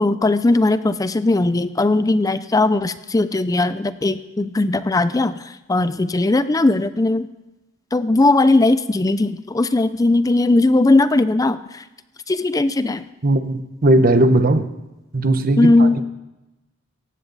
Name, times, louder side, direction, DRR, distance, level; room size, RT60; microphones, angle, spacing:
voice 1, 0.0-7.3 7.9-11.8 12.3-13.1 15.6-16.0, left 2 dB, 20° left, 13 dB, 0.4 m, -18 dB
voice 2, 13.2-14.7 15.1-16.0, right 1 dB, 45° right, 10 dB, 0.9 m, -17 dB
17.5 x 15.0 x 4.0 m, 0.99 s
head